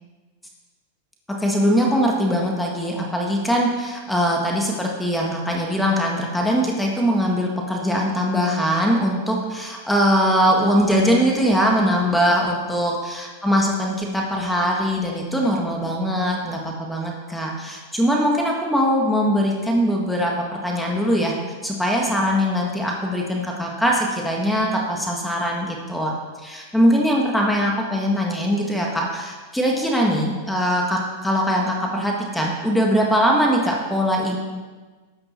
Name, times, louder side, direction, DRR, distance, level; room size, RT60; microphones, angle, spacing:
voice 1, 1.3-21.3 21.6-34.4, equal, 5° left, -1 dB, 1.6 m, -21 dB
13.0 x 8.8 x 4.5 m, 1.3 s
hypercardioid pair, 130°, 0 cm